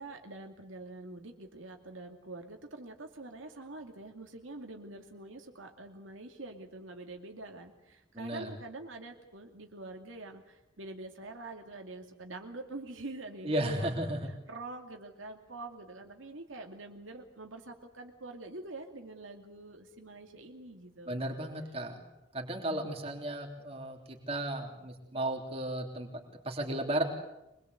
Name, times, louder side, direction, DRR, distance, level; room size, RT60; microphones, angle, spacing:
voice 1, 0.0-13.9 14.5-21.3, right 2 dB, 85° right, 3 dB, 2.5 m, -45 dB
voice 2, 8.1-8.5 13.4-14.3 21.1-22.0 22.3-26.1 26.4-27.0, right 1 dB, 30° right, 2 dB, 3.3 m, -34 dB
24.5 x 21.0 x 8.1 m, 0.91 s
head